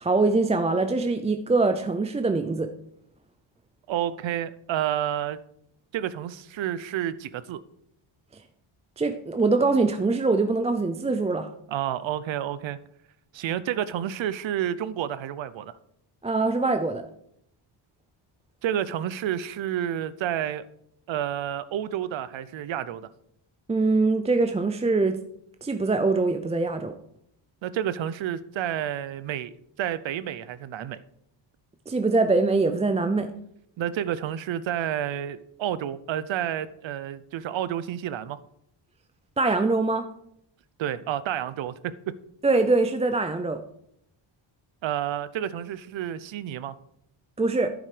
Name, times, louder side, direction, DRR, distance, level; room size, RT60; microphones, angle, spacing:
voice 1, 0.0-2.7 9.0-11.5 16.2-17.0 23.7-25.2 25.6-26.9 31.9-33.3 39.4-40.1 42.4-43.6 47.4-47.7, right 3 dB, 15° right, 7 dB, 0.4 m, -23 dB
voice 2, 3.9-5.4 5.9-7.6 11.7-12.8 13.3-15.7 18.6-20.7 21.1-23.1 27.6-29.5 29.8-31.0 33.8-38.4 40.8-41.9 44.8-46.7, right 10 dB, 70° right, 16 dB, 0.7 m, -30 dB
11.0 x 8.9 x 5.0 m, 0.73 s
wide cardioid pair, 180°, 48 cm